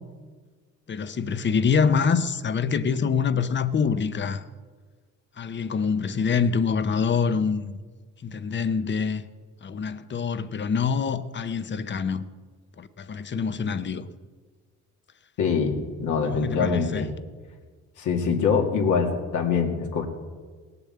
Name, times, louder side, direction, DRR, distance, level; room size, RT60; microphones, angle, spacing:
voice 1, 0.9-4.5 5.4-7.8 8.2-9.2 9.6-12.2 12.8-14.1 16.2-17.1, left 6 dB, 40° left, 0.9 m, -25 dB
voice 2, 15.4-17.1 18.0-20.1, left 5 dB, 80° left, 2.3 m, -24 dB
18.0 x 7.0 x 8.8 m
cardioid pair, 90°, 30 cm